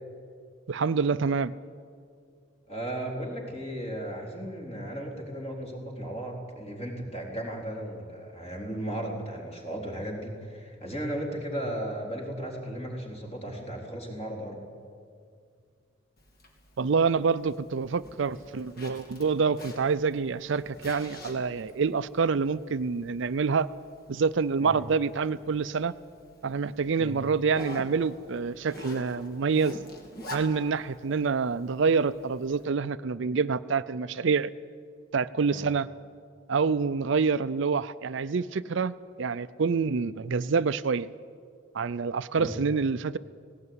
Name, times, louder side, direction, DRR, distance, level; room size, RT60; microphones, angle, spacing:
voice 1, 0.7-1.6 16.8-23.7 24.1-25.9 26.4-29.8 30.3-34.5 35.1-35.9 36.5-41.1 41.7-43.2, right 5 dB, 60° right, 14 dB, 0.5 m, -27 dB
voice 2, 2.7-14.6 24.6-24.8 27.0-27.2 35.5-35.6 42.4-42.5, right 1 dB, 30° left, 0 dB, 3.8 m, -35 dB
Zipper (clothing), 16.2-32.6, left 1 dB, 45° left, 2.8 m, -47 dB
18.0 x 18.0 x 9.6 m, 2.2 s
head